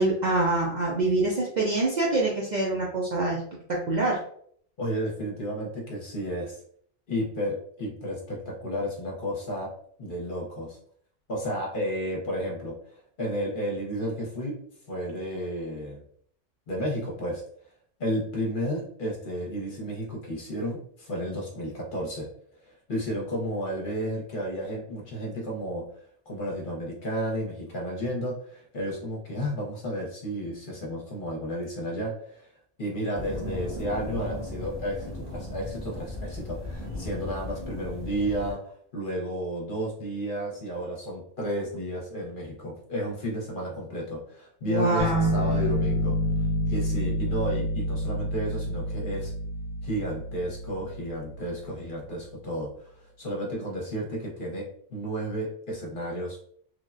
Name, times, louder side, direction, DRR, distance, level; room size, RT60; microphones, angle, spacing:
voice 1, 0.0-3.4 3.7-4.2 44.6-45.4, right 2 dB, 60° right, -3 dB, 0.5 m, -25 dB
voice 2, 4.8-6.6 7.1-9.7 10.0-10.8 11.3-12.7 13.2-14.6 14.9-16.0 16.7-17.4 18.0-22.3 22.7-25.9 26.3-32.5 32.8-38.6 38.9-46.2 46.7-49.3 49.8-52.7 53.2-56.4, equal, 50° left, -2 dB, 0.8 m, -32 dB
sound 1, 33.1-38.5, left 2 dB, 80° right, 1.5 m, -36 dB
sound 2, 45.0-51.8, left 1 dB, 25° left, 1.1 m, -28 dB
3.2 x 2.1 x 2.4 m, 0.62 s
omnidirectional pair, 1.2 m